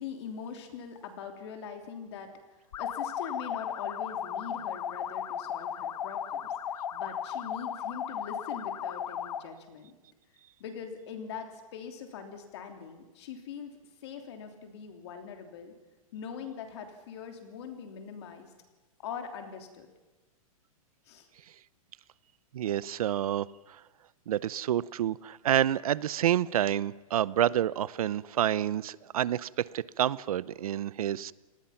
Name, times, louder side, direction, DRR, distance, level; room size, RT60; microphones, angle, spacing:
voice 1, 0.0-2.3 2.8-6.5 6.9-9.9 10.6-15.7 16.1-18.5 19.0-19.9 21.0-21.3, left 7 dB, 45° left, 4 dB, 3.2 m, -42 dB
sound 1, 2.7-9.5, left 9 dB, 75° left, 1.3 m, -35 dB
voice 2, 22.5-23.5 24.3-31.3, right 11 dB, 75° right, 20 dB, 0.7 m, -28 dB
28.5 x 19.0 x 5.8 m, 1.2 s
hypercardioid pair, 170°, 19 cm